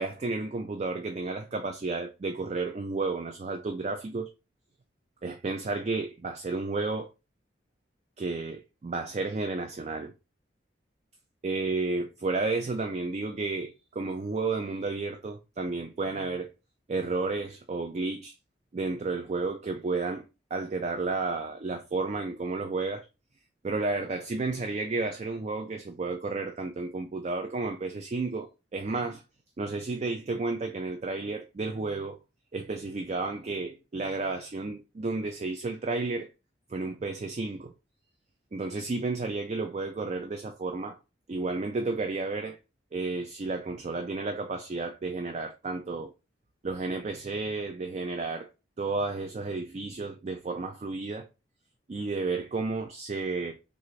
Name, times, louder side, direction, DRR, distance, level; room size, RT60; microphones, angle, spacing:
voice 1, 0.0-4.3 5.2-7.1 8.2-10.1 11.4-16.5 16.9-18.3 18.7-20.2 20.5-23.1 23.6-29.2 29.6-32.2 32.5-36.3 36.7-37.7 38.5-41.0 41.3-42.6 42.9-46.1 46.6-48.5 48.8-51.3 51.9-53.5, right 3 dB, 35° right, 0.4 m, -32 dB
3.7 x 2.5 x 3.1 m
head